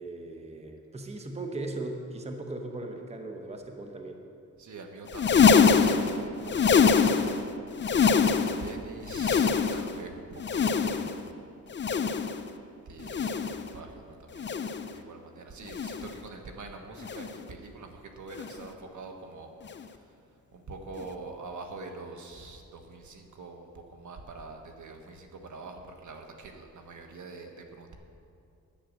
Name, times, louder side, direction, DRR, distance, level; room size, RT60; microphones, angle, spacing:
voice 1, 0.0-4.2, right 2 dB, 20° right, 4 dB, 0.9 m, -38 dB
voice 2, 4.6-7.4 8.6-11.1 12.9-14.5 14.9-19.5 20.5-28.0, right 3 dB, 60° right, 4 dB, 1.4 m, -44 dB
sound 1, 5.1-7.5 7.7-8.7 9.0-10.0 10.4-11.3 11.7-12.5 13.0-13.7 14.4-14.9 15.7-16.2 17.0-17.4 18.3-18.7 19.6-19.8 21.0-21.1, left 6 dB, 35° left, 0.6 m, -24 dB
10.5 x 8.6 x 6.3 m, 2.5 s
cardioid pair, 95°, 33 cm